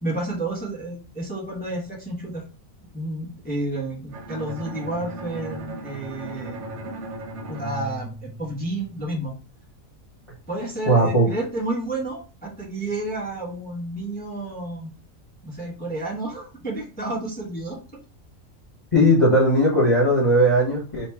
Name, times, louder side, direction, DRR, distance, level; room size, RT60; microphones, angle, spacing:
voice 1, 0.0-2.4 2.9-7.0 7.5-9.3 10.5-14.9 15.4-17.8, right 2 dB, 5° left, -3 dB, 1.0 m, -31 dB
Bowed string instrument, 4.1-9.0, right 1 dB, 65° right, 1.0 m, -36 dB
voice 2, 10.9-11.3 18.9-21.1, equal, 25° left, -5 dB, 1.3 m, -18 dB
3.1 x 3.1 x 4.5 m, 0.34 s
omnidirectional pair, 1.4 m